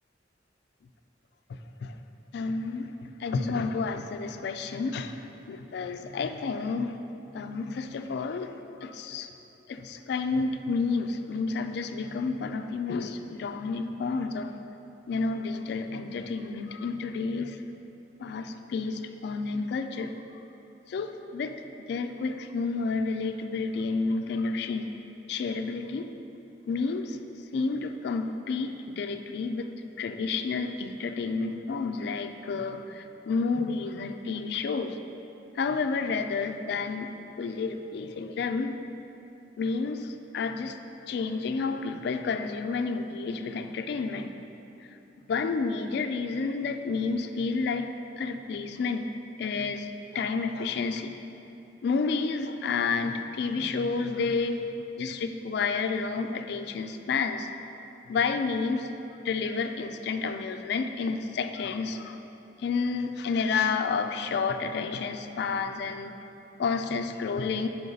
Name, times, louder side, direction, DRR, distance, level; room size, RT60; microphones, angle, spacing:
voice 1, 2.3-2.9 3.2-5.1 5.5-7.0 7.3-8.5 8.8-9.3 9.7-14.5 15.1-17.6 18.2-20.1 20.9-21.6 21.9-24.9 25.3-26.1 26.7-27.2 27.5-29.7 30.0-35.0 35.6-37.1 37.4-38.8 39.6-40.7 41.1-44.3 45.3-47.9 48.2-49.1 49.4-49.9 50.1-51.2 51.8-54.6 55.0-57.5 58.1-58.9 59.2-62.2 62.6-66.2 66.6-67.7, left 4 dB, 60° left, 8 dB, 0.3 m, -30 dB
5.7 x 5.3 x 3.9 m, 2.9 s
head